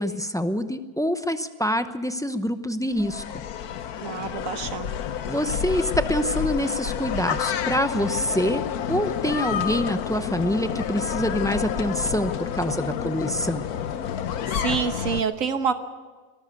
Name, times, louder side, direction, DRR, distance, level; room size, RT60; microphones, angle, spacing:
voice 1, 0.0-3.2 5.3-13.6, equal, 5° left, 9 dB, 0.4 m, -26 dB
sound 1, 3.0-15.2, left 8 dB, 90° left, 1.4 m, -29 dB
voice 2, 4.0-4.9 14.5-15.7, right 6 dB, 65° right, 9 dB, 1.5 m, -27 dB
23.0 x 14.0 x 8.2 m, 1.4 s
omnidirectional pair, 1.5 m